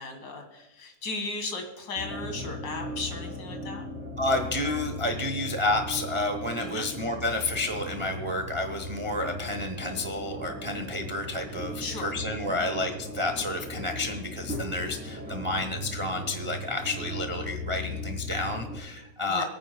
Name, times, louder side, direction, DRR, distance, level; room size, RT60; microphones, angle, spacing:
voice 1, 0.0-3.8 6.6-6.9 11.8-12.1 12.5-12.7 19.3-19.5, left 3 dB, 60° left, 4 dB, 2.3 m, -36 dB
sound 1, 1.9-18.8, left 1 dB, 5° right, 3.1 m, -37 dB
voice 2, 4.2-19.4, left 2 dB, 30° right, 5 dB, 0.6 m, -30 dB
26.5 x 9.4 x 2.2 m, 1.0 s
omnidirectional pair, 2.0 m